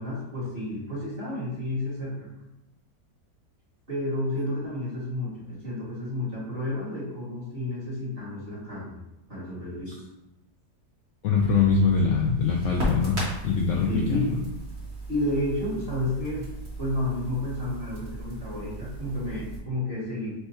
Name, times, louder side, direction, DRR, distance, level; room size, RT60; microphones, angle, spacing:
voice 1, 0.0-2.3 3.9-9.0 9.3-9.9 13.9-14.3 15.1-16.5 16.8-20.3, left 1 dB, 35° right, -7 dB, 1.7 m, -31 dB
voice 2, 11.2-13.2 13.4-14.4, left 5 dB, 70° left, -1 dB, 0.7 m, -23 dB
Crackle, 11.3-19.6, right 2 dB, 60° right, 1.9 m, -36 dB
4.3 x 2.3 x 4.2 m, 0.90 s
omnidirectional pair, 1.7 m